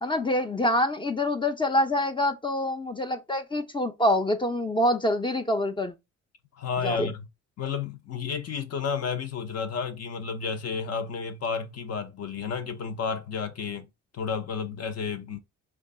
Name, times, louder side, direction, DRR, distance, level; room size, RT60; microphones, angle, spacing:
voice 1, 0.0-5.9 6.8-7.1, left 1 dB, 15° left, 0.5 m, -26 dB
voice 2, 6.6-7.3 7.6-13.9 14.1-15.4, left 6 dB, 55° left, 0.7 m, -31 dB
3.2 x 2.3 x 3.7 m
cardioid pair, 90°, 30 cm